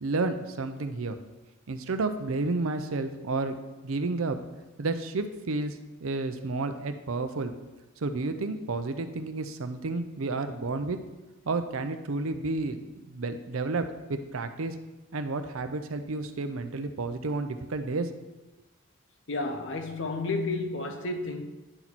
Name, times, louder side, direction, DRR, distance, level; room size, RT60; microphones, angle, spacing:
voice 1, 0.0-1.2 1.7-3.5 3.8-4.4 4.8-7.5 8.0-11.0 11.5-14.8 15.1-18.1, right 3 dB, 80° right, 0.6 m, -31 dB
voice 2, 19.3-21.4, left 3 dB, 60° left, 0.8 m, -31 dB
9.9 x 4.5 x 4.1 m
head